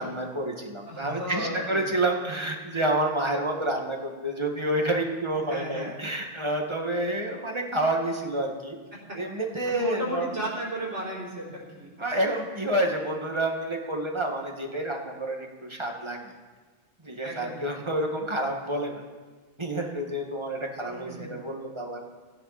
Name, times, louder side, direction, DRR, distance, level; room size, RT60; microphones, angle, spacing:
voice 1, 0.0-8.8 9.1-10.3 12.0-16.3 17.0-19.0 19.6-22.0, right 1 dB, 25° right, 1 dB, 2.0 m, -29 dB
voice 2, 0.9-1.9 5.4-6.0 8.9-9.0 9.6-11.9 17.2-17.7 20.9-21.4, right 1 dB, 65° right, -3 dB, 4.4 m, -35 dB
17.5 x 13.5 x 4.3 m, 1.4 s
omnidirectional pair, 1.3 m